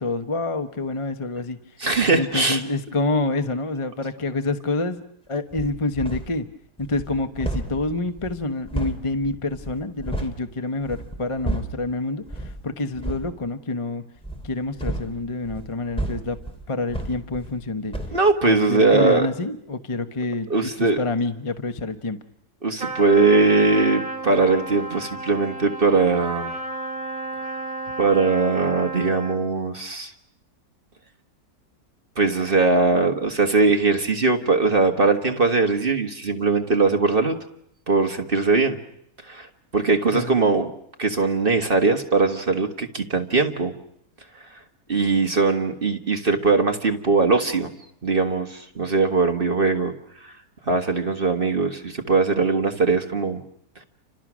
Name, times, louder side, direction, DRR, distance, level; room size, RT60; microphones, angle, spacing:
voice 1, 0.0-1.8 2.1-5.0 5.3-6.5 6.8-14.0 14.4-16.4 16.7-17.9 18.4-22.2 40.1-40.3, left 3 dB, 25° left, 8 dB, 0.9 m, -27 dB
voice 2, 1.8-2.6 18.1-19.3 20.5-21.0 22.6-26.5 28.0-30.1 32.2-37.4 37.9-38.8 39.2-39.5 39.7-40.7 41.0-43.7 44.9-47.7 48.0-49.9 50.6-53.4, right 3 dB, 40° right, 5 dB, 1.6 m, -20 dB
sound 1, 5.5-6.4 6.8-10.4 10.8-11.9 12.3-12.6 12.9-13.3 14.2-17.7 17.9-18.2, right 1 dB, 5° left, 2.9 m, -32 dB
Trumpet, 22.8-29.5, right 2 dB, 65° right, 2.7 m, -32 dB
30.0 x 26.0 x 6.2 m, 0.74 s
omnidirectional pair, 1.6 m